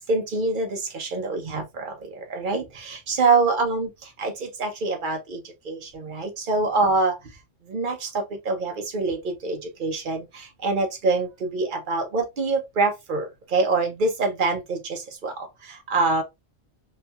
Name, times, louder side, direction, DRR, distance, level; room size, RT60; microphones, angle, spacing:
voice 1, 0.1-7.4 7.7-16.2, right 3 dB, 50° right, 0.8 m, -25 dB
3.1 x 2.8 x 2.3 m
omnidirectional pair, 1.2 m